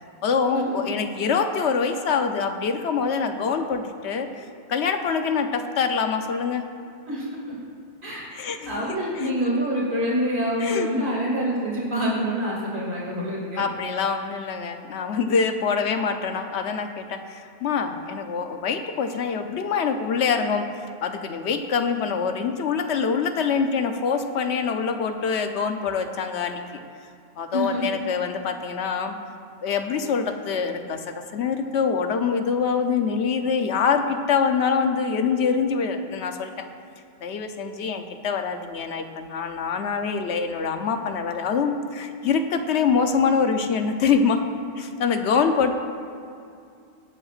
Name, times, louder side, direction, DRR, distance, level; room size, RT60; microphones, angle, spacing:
voice 1, 0.2-6.6 8.3-8.8 9.2-9.3 10.6-10.9 13.5-20.6 21.0-26.6 27.4-29.1 29.6-36.6 37.2-44.4 44.8-45.7, left 5 dB, 90° left, 6 dB, 1.0 m, -25 dB
voice 2, 7.1-7.6 8.0-8.3 8.6-13.6 27.5-28.0, equal, 50° right, -5 dB, 2.5 m, -26 dB
18.5 x 7.9 x 2.5 m, 2.5 s
omnidirectional pair, 1.1 m